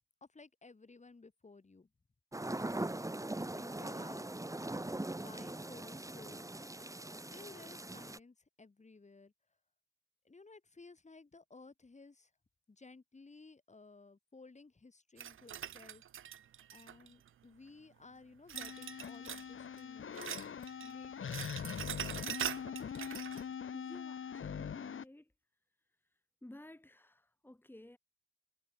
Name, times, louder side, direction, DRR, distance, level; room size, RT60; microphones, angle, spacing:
voice 1, 0.2-1.9 3.5-4.3 4.9-9.3 10.2-12.3 12.7-16.0 16.7-20.3 20.8-21.4, left 3 dB, 35° left, 3.9 m, -57 dB
sound 1, 2.3-8.2, right 2 dB, 15° right, 2.7 m, -41 dB
sound 2, 15.2-17.3 18.5-19.5 19.8-20.9 21.2-23.4, right 10 dB, 75° right, 0.6 m, -43 dB
sound 3, 18.5-25.0, left 7 dB, 70° left, 2.5 m, -42 dB
voice 2, 23.7-25.3 26.4-28.0, left 1 dB, 10° left, 2.6 m, -54 dB
cardioid pair, 80°, 21 cm